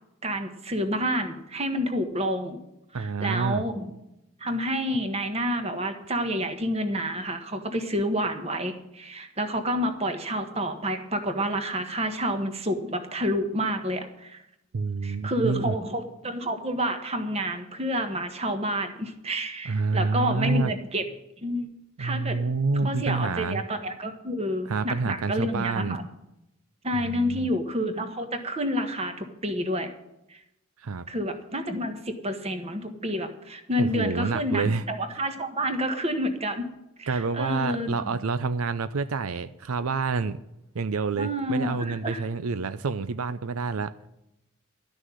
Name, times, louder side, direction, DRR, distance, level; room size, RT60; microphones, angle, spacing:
voice 1, 0.2-2.6 2.9-3.9 4.4-14.4 15.0-21.0 21.4-21.7 22.0-22.4 22.7-26.1 26.8-29.9 30.3-30.4 31.1-36.6 37.0-38.1 41.2-42.2, equal, 30° right, 7 dB, 1.4 m, -29 dB
voice 2, 2.9-3.6 14.7-15.7 19.7-20.7 22.0-23.6 24.7-26.0 26.9-27.5 30.8-31.1 33.8-34.8 37.1-40.4 40.7-43.9, right 4 dB, 85° right, 13 dB, 0.6 m, -28 dB
12.5 x 6.4 x 9.7 m, 0.87 s
head